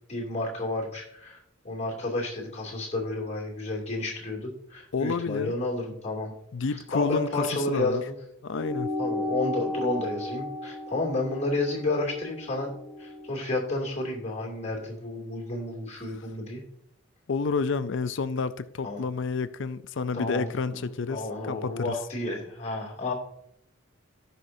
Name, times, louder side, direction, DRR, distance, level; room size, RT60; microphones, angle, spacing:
voice 1, 0.1-6.3 6.7-8.1 9.0-12.7 13.0-16.6 18.8-19.0 20.1-23.1, left 2 dB, 35° left, 2.8 m, -31 dB
voice 2, 4.9-5.5 6.5-8.0 8.4-8.9 17.3-21.9, left 4 dB, 65° left, 0.5 m, -30 dB
sound 1, 8.5-13.3, left 2 dB, 5° right, 2.8 m, -34 dB
16.5 x 5.9 x 2.7 m
head